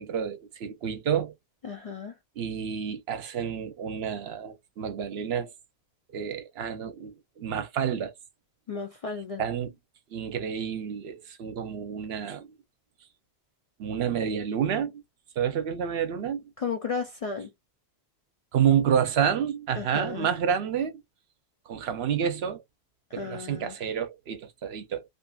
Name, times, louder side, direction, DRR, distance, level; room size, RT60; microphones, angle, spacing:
voice 1, 0.0-1.3 2.4-5.5 6.1-8.1 9.4-9.8 10.1-12.5 13.8-15.0 15.4-16.4 18.5-21.0 21.7-22.6 23.1-25.0, right 8 dB, 75° right, 0.9 m, -29 dB
voice 2, 1.6-2.1 8.7-9.4 16.6-17.5 19.8-20.3 23.1-23.8, left 5 dB, 55° left, 0.4 m, -34 dB
2.5 x 2.5 x 2.3 m
omnidirectional pair, 1.1 m